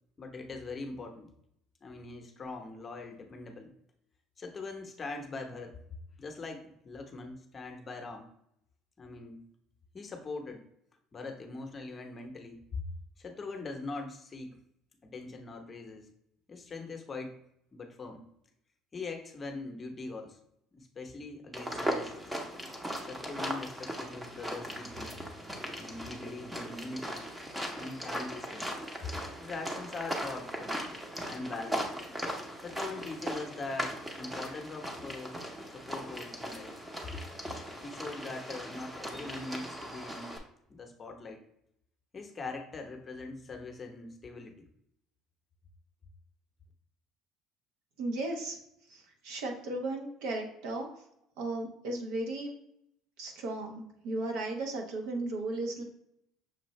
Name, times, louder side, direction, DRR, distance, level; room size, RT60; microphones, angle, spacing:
voice 1, 0.2-1.3 1.8-3.7 4.4-5.7 6.2-8.3 9.0-9.4 9.9-10.6 11.1-12.8 13.2-14.6 15.0-16.1 16.5-17.3 17.7-18.2 18.9-20.4 20.7-22.3 23.0-25.1 25.8-27.2 27.8-28.7 29.0-29.1 29.4-30.8 31.3-31.9 32.6-35.4 35.7-36.7 37.8-40.4 40.7-41.4 42.1-44.7, left 3 dB, 25° left, 4 dB, 0.8 m, -42 dB
sound 1, 21.5-40.4, equal, 10° right, 0.8 m, -38 dB
voice 2, 48.0-48.6 48.9-50.9 51.4-52.5 53.2-55.8, right 2 dB, 85° right, 2 dB, 1.0 m, -35 dB
6.3 x 2.4 x 3.0 m, 0.75 s
cardioid pair, 115°, 0 cm